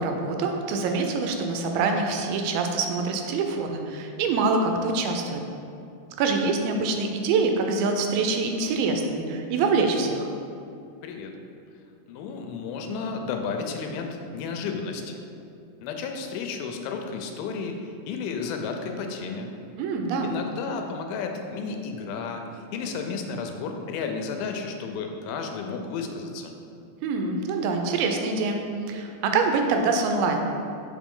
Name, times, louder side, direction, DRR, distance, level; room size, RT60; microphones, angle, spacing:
voice 1, 0.0-5.4 6.2-10.3 19.8-20.4 27.0-30.4, right 4 dB, 85° right, 4 dB, 2.4 m, -25 dB
voice 2, 11.0-11.3 12.1-15.2 15.8-19.5 20.2-26.5, left 5 dB, 85° left, 4 dB, 2.4 m, -32 dB
6.1 x 4.4 x 3.7 m, 2.6 s
omnidirectional pair, 4.2 m